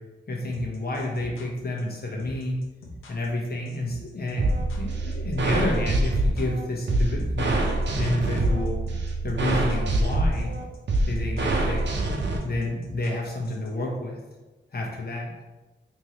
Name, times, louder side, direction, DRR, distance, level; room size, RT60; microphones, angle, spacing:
voice 1, 0.3-2.6 3.1-7.6 7.9-8.8 9.2-10.5 11.1-11.9 12.4-14.2 14.7-15.3, left 1 dB, 50° left, -2 dB, 1.1 m, -29 dB
sound 1, 0.5-13.7, left 3 dB, 80° left, 0.7 m, -44 dB
sound 2, 4.4-12.4, right 2 dB, 60° right, 0.8 m, -25 dB
3.6 x 2.9 x 3.0 m, 1.1 s
supercardioid pair, 45°, 21 cm